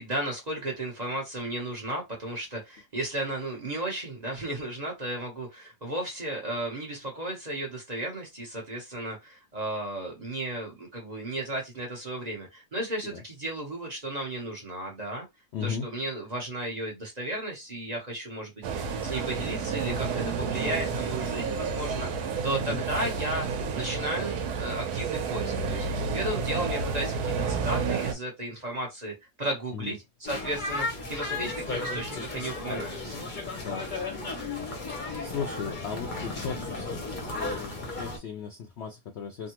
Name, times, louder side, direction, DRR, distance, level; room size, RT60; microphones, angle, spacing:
voice 1, 0.0-15.2 15.6-25.9 26.1-33.2, right 1 dB, 30° right, 0.9 m, -34 dB
voice 2, 15.5-15.8 22.6-22.8 26.6-26.7 29.7-29.9 33.6-33.8 35.2-39.5, left 6 dB, 65° left, 0.6 m, -36 dB
sound 1, 18.6-28.1, right 5 dB, 80° right, 1.2 m, -30 dB
sound 2, 30.2-38.2, left 3 dB, 40° left, 0.8 m, -34 dB
3.5 x 2.1 x 2.9 m
omnidirectional pair, 1.7 m